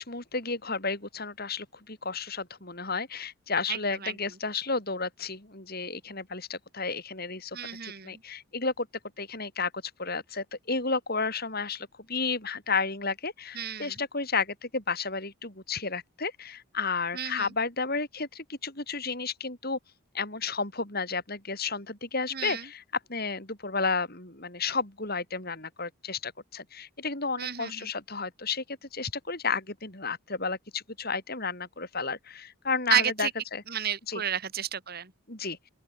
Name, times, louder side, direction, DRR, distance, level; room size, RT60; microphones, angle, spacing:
voice 1, 0.0-7.6 7.8-8.9 9.2-9.7 10.0-19.8 20.1-22.8 23.1-33.6 34.1-34.2 35.3-35.6, left 4 dB, 45° left, 5.9 m, -32 dB
voice 2, 3.7-4.1 7.5-8.2 13.5-14.0 17.1-17.5 22.3-22.6 27.4-27.9 32.9-33.3 33.7-35.1, right 9 dB, 45° right, 2.3 m, -31 dB
open air
head